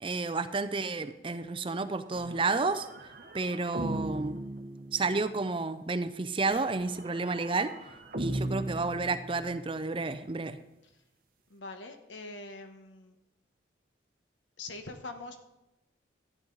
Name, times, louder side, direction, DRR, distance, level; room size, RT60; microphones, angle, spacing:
voice 1, 0.0-2.9 3.3-4.4 4.9-7.7 8.2-10.6, right 3 dB, 25° right, 11 dB, 0.5 m, -31 dB
sound 1, 2.1-5.4 6.5-9.8, right 1 dB, 45° right, 1.0 m, -38 dB
voice 2, 11.5-13.1 14.6-15.4, left 3 dB, 80° left, 6 dB, 1.1 m, -43 dB
13.5 x 9.8 x 4.0 m, 0.93 s
head